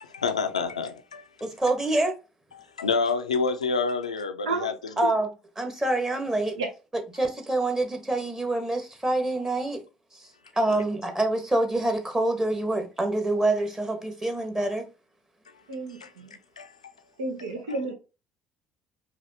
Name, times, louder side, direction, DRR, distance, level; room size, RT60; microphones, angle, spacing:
voice 1, 0.0-1.2 2.8-4.7 10.7-10.8 16.0-16.1 16.6-16.7 17.7-17.8, left 4 dB, 85° left, 0.4 m, -28 dB
voice 2, 1.4-2.1 5.0-5.3 5.6-6.5 6.9-9.8 10.2-10.3 10.5-14.8, right 2 dB, 15° right, 1.3 m, -26 dB
voice 3, 15.7-16.3 17.2-17.9, right 3 dB, 75° right, 0.9 m, -31 dB
4.9 x 2.6 x 2.8 m
figure-of-eight pair, 55°, 3 cm